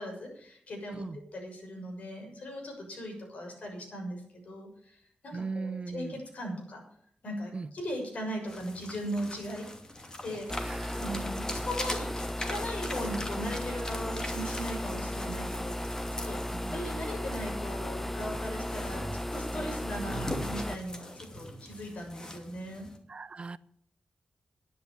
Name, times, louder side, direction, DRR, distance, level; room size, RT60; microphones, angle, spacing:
voice 1, 0.0-1.0 1.3-6.8 7.2-9.7 10.2-10.7 11.0-12.1 12.5-22.9, equal, 65° left, 1 dB, 6.6 m, -39 dB
voice 2, 5.3-6.2 7.5-7.7 10.6-11.1 16.5-16.8 19.5-19.7 23.1-23.6, right 4 dB, 45° right, 16 dB, 0.6 m, -39 dB
sound 1, 8.5-23.0, left 1 dB, 25° left, 2.6 m, -42 dB
sound 2, 10.5-20.8, left 1 dB, 10° left, 0.6 m, -35 dB
12.0 x 10.0 x 7.0 m, 0.64 s
cardioid pair, 80°, 3 cm